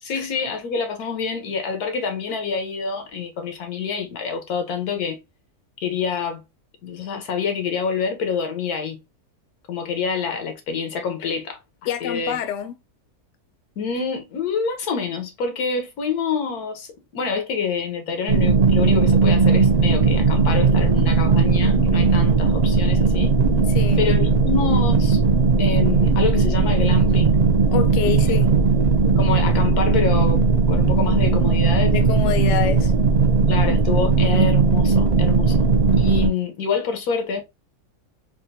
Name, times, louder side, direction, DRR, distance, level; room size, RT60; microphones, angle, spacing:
voice 1, 0.0-5.2 5.8-6.4 6.8-9.0 9.7-11.6 12.0-12.4 13.8-23.4 24.0-25.2 25.6-27.4 28.1-28.2 29.2-30.4 30.7-31.9 33.5-35.7 36.0-37.4, left 5 dB, 90° left, 1.3 m, -27 dB
voice 2, 11.8-12.8 23.7-24.1 27.7-28.5 31.8-32.9, left 9 dB, 65° left, 0.8 m, -26 dB
sound 1, 18.3-36.3, right 4 dB, 85° right, 0.3 m, -17 dB
3.4 x 2.3 x 2.6 m
omnidirectional pair, 1.6 m